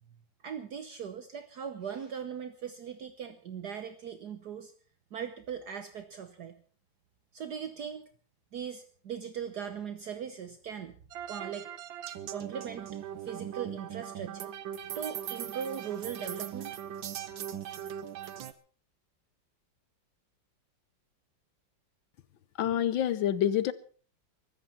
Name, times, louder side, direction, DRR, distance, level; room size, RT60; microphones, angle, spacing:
voice 1, 0.4-4.7 5.1-6.6 7.3-8.1 8.5-10.9 11.3-11.7 12.3-12.9 13.2-14.5 14.9-16.7, right 8 dB, 60° right, 9 dB, 1.5 m, -39 dB
sound 1, 11.1-18.5, right 10 dB, 90° right, 1.7 m, -39 dB
voice 2, 22.6-23.7, left 10 dB, 85° left, 16 dB, 1.7 m, -27 dB
23.0 x 13.5 x 4.3 m, 0.43 s
omnidirectional pair, 2.0 m